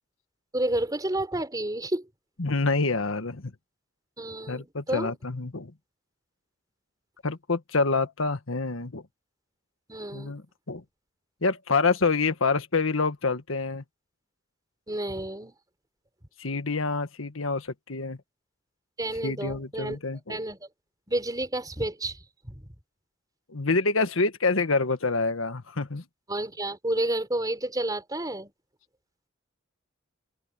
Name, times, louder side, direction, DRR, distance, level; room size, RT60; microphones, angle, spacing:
voice 1, 0.5-2.1 4.2-5.1 9.9-10.4 14.9-15.5 19.0-20.0 20.3-20.7 21.1-22.7 26.3-28.5, right 1 dB, 20° right, 4.4 m, -30 dB
voice 2, 2.4-3.5 4.5-5.7 7.2-9.0 10.1-10.4 10.7-10.8 11.4-13.8 16.4-18.2 19.2-20.4 23.5-26.0, left 3 dB, 90° left, 1.5 m, -27 dB
head